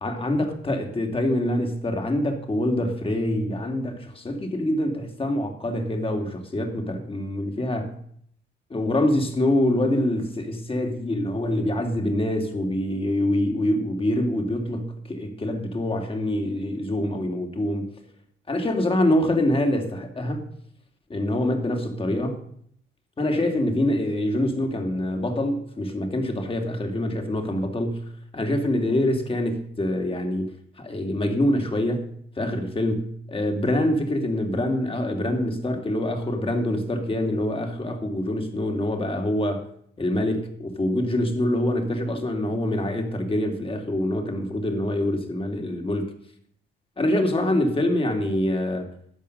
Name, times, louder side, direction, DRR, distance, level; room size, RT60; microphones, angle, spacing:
voice 1, 0.0-7.9 8.7-17.9 18.5-20.5 21.1-22.4 23.2-28.0 28.3-30.5 30.8-32.1 32.4-39.6 40.0-46.1 47.0-48.9, left 1 dB, 25° left, 2.7 m, -25 dB
13.0 x 8.6 x 6.7 m
cardioid pair, 90°, 20 cm